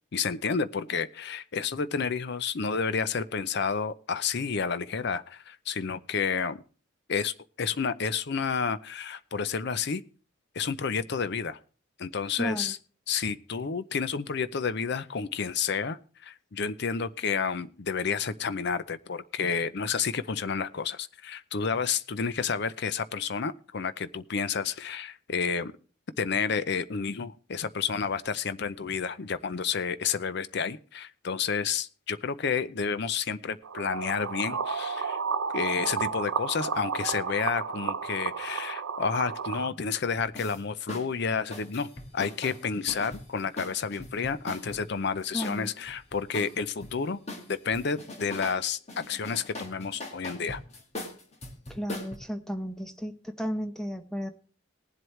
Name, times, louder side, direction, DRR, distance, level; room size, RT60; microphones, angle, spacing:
voice 1, 0.1-6.6 7.1-10.0 10.5-11.6 12.0-12.8 13.1-25.7 26.2-35.2 35.5-47.2 47.5-50.6, left 5 dB, 55° left, 14 dB, 0.5 m, -30 dB
voice 2, 12.4-12.7 45.3-45.7 51.7-54.3, equal, ahead, 7 dB, 0.8 m, -33 dB
sound 1, 33.6-39.7, right 5 dB, 75° right, 0.7 m, -32 dB
sound 2, 40.2-40.6 40.9-41.1 41.5-44.9 45.4-47.0 47.3-48.6 48.9-52.2, left 2 dB, 30° left, 1.9 m, -41 dB
19.5 x 7.8 x 3.2 m, 0.39 s
head